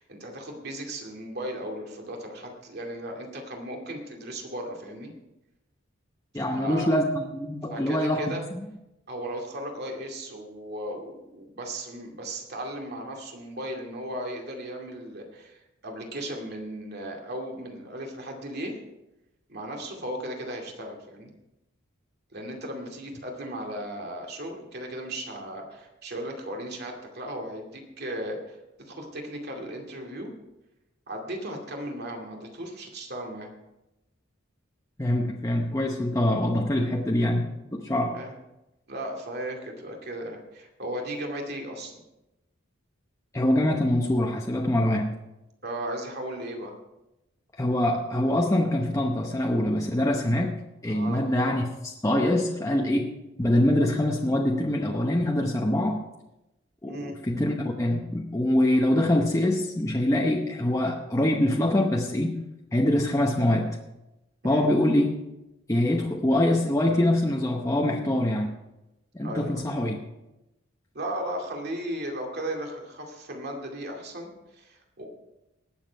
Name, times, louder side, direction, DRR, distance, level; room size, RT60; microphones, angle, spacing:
voice 1, 0.0-5.1 6.4-7.0 7.7-8.4 9.1-18.8 19.5-21.3 22.3-30.3 31.1-33.5 38.1-38.3 38.9-41.9 45.6-46.7 50.9-51.3 56.8-57.2 64.4-64.7 69.2-69.6 70.9-75.1, right 1 dB, 55° right, 1 dB, 2.4 m, -36 dB
voice 2, 6.3-8.3 35.0-38.2 43.3-45.1 47.6-50.5 50.8-53.1 53.4-56.0 56.8-62.4 62.7-63.8 64.4-65.2 65.7-68.5 69.1-70.0, left 1 dB, 15° left, 0 dB, 0.8 m, -24 dB
19.0 x 7.3 x 4.6 m, 0.93 s
head